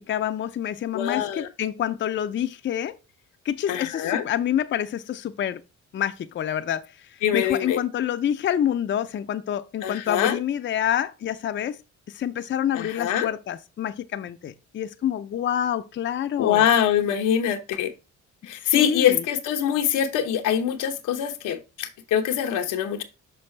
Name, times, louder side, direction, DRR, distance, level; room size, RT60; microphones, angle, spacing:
voice 1, 0.0-3.0 3.5-5.6 5.9-11.8 12.1-16.7 18.6-19.2, left 10 dB, 40° left, 0.5 m, -27 dB
voice 2, 0.9-1.5 3.7-4.2 7.2-7.8 9.8-10.4 12.7-13.3 16.4-17.9 18.4-23.0, left 9 dB, 90° left, 0.9 m, -24 dB
6.0 x 5.5 x 3.2 m
cardioid pair, 90°, 30 cm